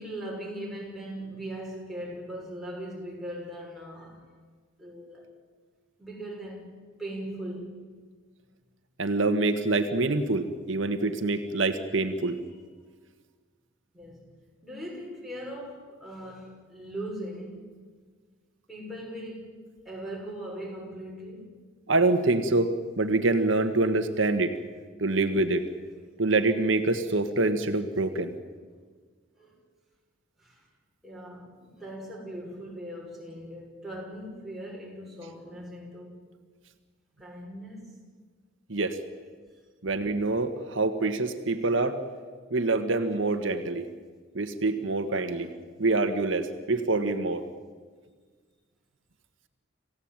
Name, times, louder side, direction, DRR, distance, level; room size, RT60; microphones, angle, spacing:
voice 1, 0.0-4.2 4.8-5.3 6.0-7.8 12.2-12.3 13.9-14.3 14.6-17.7 18.7-19.6 19.8-21.5 29.4-29.6 30.4-30.6 31.0-36.2 37.2-37.9, right 1 dB, ahead, 6.5 m, -39 dB
voice 2, 9.0-12.4 21.9-22.7 23.0-24.5 25.0-25.6 26.2-28.3 38.7-39.0 39.8-42.0 42.5-43.9 44.3-45.5 45.8-47.4, right 2 dB, 75° right, 1.6 m, -25 dB
27.5 x 16.5 x 9.0 m
head